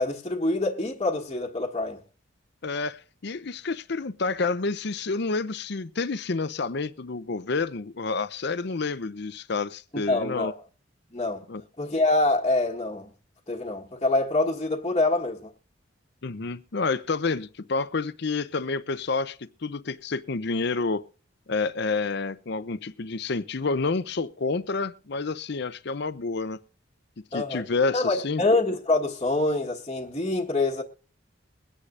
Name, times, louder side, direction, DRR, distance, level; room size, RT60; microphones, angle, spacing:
voice 1, 0.0-2.0 9.9-10.6 11.1-11.4 11.8-13.1 13.5-15.5 27.3-27.6 27.9-30.8, left 2 dB, 25° left, 1.4 m, -25 dB
voice 2, 2.6-10.5 11.5-11.6 16.2-21.0 21.5-26.6 27.3-28.4, left 4 dB, 60° left, 0.7 m, -29 dB
22.5 x 9.9 x 2.5 m
head